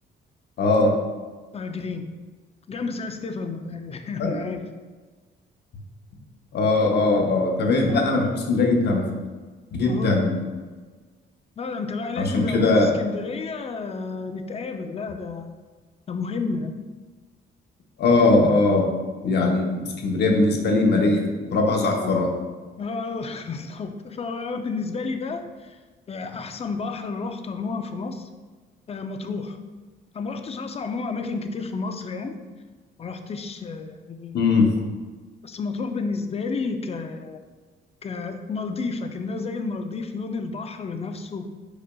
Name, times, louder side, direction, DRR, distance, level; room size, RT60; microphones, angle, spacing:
voice 1, 0.6-0.9 4.2-4.4 6.5-9.0 9.8-10.4 12.2-12.9 18.0-18.9 19.2-21.2 21.5-22.3 34.3-34.7, left 3 dB, 60° left, 1 dB, 0.8 m, -20 dB
voice 2, 1.5-2.1 2.7-4.7 7.9-8.0 9.9-10.4 11.6-15.6 16.1-16.7 22.0-22.2 22.8-25.8 26.1-28.3 28.9-29.6 30.1-32.3 33.0-34.5 35.4-37.4 38.0-41.4, left 4 dB, 30° left, 7 dB, 0.4 m, -31 dB
5.0 x 4.2 x 2.3 m, 1.4 s
cardioid pair, 90°, 20 cm